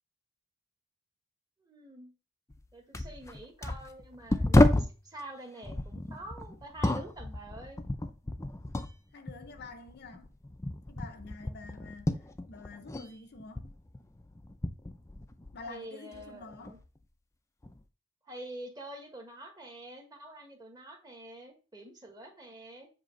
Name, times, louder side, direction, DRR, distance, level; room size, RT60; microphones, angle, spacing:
voice 1, 1.6-2.1 2.7-7.8 15.6-16.8 18.2-22.9, right 1 dB, 20° right, 1.3 m, -46 dB
sound 1, 2.5-2.6 2.9-5.0 5.6-9.0 9.3-13.1 13.4-15.7 16.1-16.9 17.6-17.8, left 1 dB, 15° left, 0.4 m, -31 dB
voice 2, 9.1-10.3 10.9-13.7 15.5-16.8, left 3 dB, 50° left, 0.7 m, -48 dB
7.5 x 2.9 x 5.2 m
head